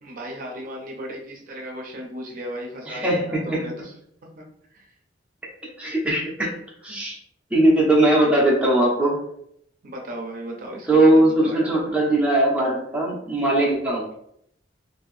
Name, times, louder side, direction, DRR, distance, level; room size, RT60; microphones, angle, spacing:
voice 1, 0.0-3.9 4.4-4.5 4.7-4.9 6.9-7.0 9.8-11.7, equal, 50° right, 0 dB, 0.6 m, -36 dB
voice 2, 2.9-3.6 5.8-6.5 6.8-7.2 7.5-9.2 10.9-14.1, right 1 dB, 5° right, -4 dB, 0.7 m, -19 dB
2.8 x 2.6 x 3.1 m, 0.70 s
head